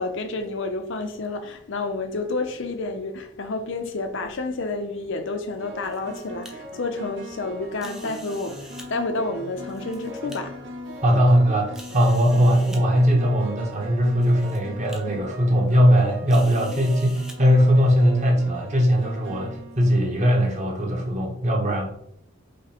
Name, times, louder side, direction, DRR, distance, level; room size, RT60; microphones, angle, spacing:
voice 1, 0.0-10.5, left 3 dB, 60° left, 0.6 m, -30 dB
sound 1, 4.0-4.3 5.6-20.4, equal, 55° right, 0.8 m, -40 dB
sound 2, 5.8-6.5 7.8-8.9 9.6-10.4 11.0-11.1 11.7-12.8 13.7-13.8 14.2-14.6 14.9-15.0 16.3-17.4, equal, 5° right, 0.5 m, -45 dB
voice 2, 11.0-21.8, equal, 35° right, 1.0 m, -20 dB
5.0 x 2.2 x 4.2 m
head